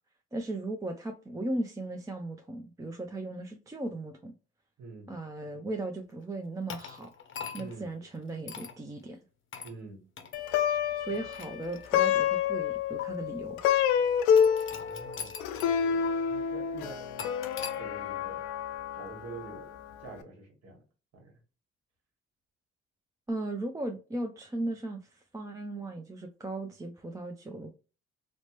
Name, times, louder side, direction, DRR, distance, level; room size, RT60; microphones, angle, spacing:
voice 1, 0.3-4.3 5.1-7.1 7.5-9.2 11.0-14.0 23.3-27.7, right 2 dB, 10° right, 0.4 m, -37 dB
voice 2, 4.8-5.1 7.6-7.9 9.6-10.0 14.8-15.3 15.6-17.3 17.8-18.4 18.9-20.8 21.1-21.3, right 3 dB, 55° right, 1.4 m, -46 dB
sound 1, 6.7-7.8 8.5-8.8 9.5-9.8 10.2-10.4 11.1-12.2 13.0-13.1 14.4-15.8 16.0-16.1 17.2-17.8, left 7 dB, 40° left, 0.7 m, -41 dB
Plucked string instrument, 10.3-19.7, left 8 dB, 80° left, 0.5 m, -28 dB
3.0 x 2.1 x 2.9 m
hypercardioid pair, 60°, 31 cm